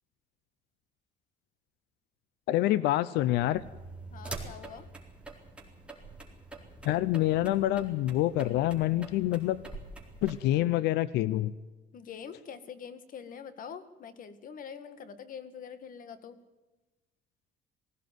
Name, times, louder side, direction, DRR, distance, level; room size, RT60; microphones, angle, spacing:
voice 1, 2.5-3.6 6.8-9.6 10.2-11.5, left 14 dB, 85° left, 18 dB, 0.7 m, -26 dB
sound 1, 3.3-10.4, right 3 dB, 5° right, 4.1 m, -45 dB
voice 2, 4.1-4.9 11.9-16.4, left 7 dB, 55° left, 12 dB, 1.9 m, -44 dB
19.5 x 16.0 x 9.4 m, 1.1 s
cardioid pair, 110°, 17 cm